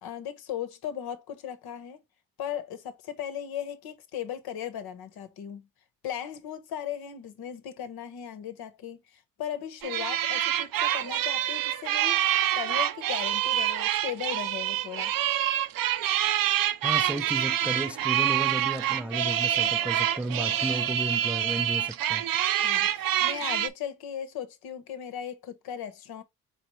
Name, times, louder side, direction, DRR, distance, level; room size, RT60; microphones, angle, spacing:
voice 1, 0.0-2.0 2.4-5.7 6.0-12.3 12.5-15.1 22.6-26.2, left 9 dB, 80° left, 1.1 m, -37 dB
sound 1, 9.8-23.7, right 11 dB, 65° right, 0.6 m, -26 dB
voice 2, 16.8-22.2, right 1 dB, 5° right, 0.4 m, -33 dB
4.2 x 4.1 x 3.0 m
supercardioid pair, 70°, 37 cm